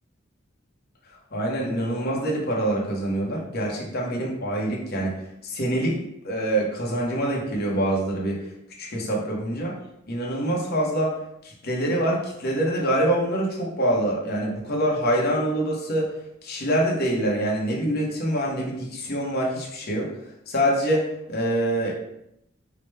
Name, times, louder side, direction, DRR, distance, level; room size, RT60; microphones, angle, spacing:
voice 1, 1.1-5.2 5.4-8.4 8.8-9.7 10.1-11.2 11.4-16.1 16.4-20.1 20.5-21.9, right 1 dB, 50° left, -3 dB, 1.0 m, -25 dB
4.8 x 2.2 x 3.2 m, 0.79 s
head